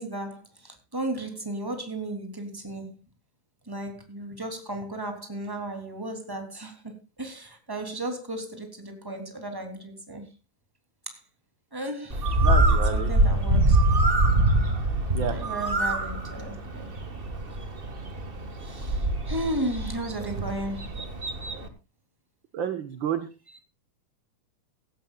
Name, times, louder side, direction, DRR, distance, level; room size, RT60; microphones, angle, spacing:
voice 1, 0.0-2.9 3.7-6.7 7.2-10.2 11.7-12.2 12.9-13.8 15.2-16.9 18.6-19.0 19.2-20.9, right 1 dB, 5° right, 2.9 m, -34 dB
Bird, 12.1-21.7, right 1 dB, 25° right, 1.3 m, -24 dB
voice 2, 12.4-13.1 15.1-15.4 22.5-23.3, right 8 dB, 55° right, 1.5 m, -30 dB
17.0 x 15.5 x 2.4 m
omnidirectional pair, 3.5 m